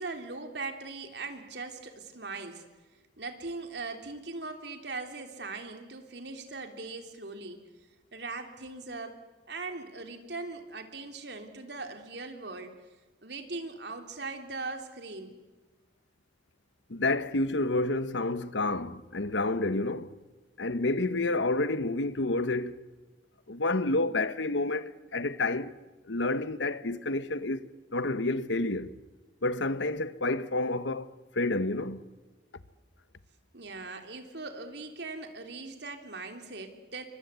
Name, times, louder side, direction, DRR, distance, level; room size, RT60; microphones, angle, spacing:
voice 1, 0.0-2.6 3.2-7.6 8.1-9.2 9.5-12.7 13.2-15.4 33.5-37.0, right 3 dB, 65° right, 3.4 m, -40 dB
voice 2, 16.9-20.2 20.6-22.8 23.5-25.7 26.0-29.0 29.4-32.0, left 2 dB, 90° left, 1.2 m, -29 dB
29.5 x 24.0 x 8.3 m
head